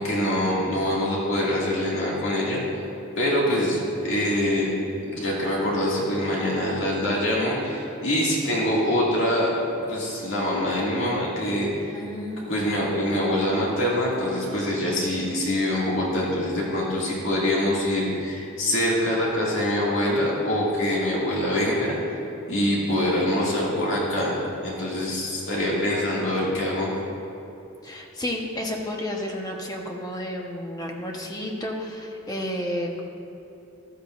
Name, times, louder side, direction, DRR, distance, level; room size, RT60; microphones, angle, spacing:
voice 1, 0.0-2.6 3.2-4.7 5.1-9.5 9.9-11.9 12.5-22.0 22.5-24.3 24.6-26.9, left 1 dB, 60° left, -5 dB, 2.3 m, -24 dB
voice 2, 11.9-12.5 27.8-33.0, left 1 dB, 15° left, 0 dB, 1.1 m, -31 dB
13.5 x 13.5 x 2.6 m, 2.8 s
head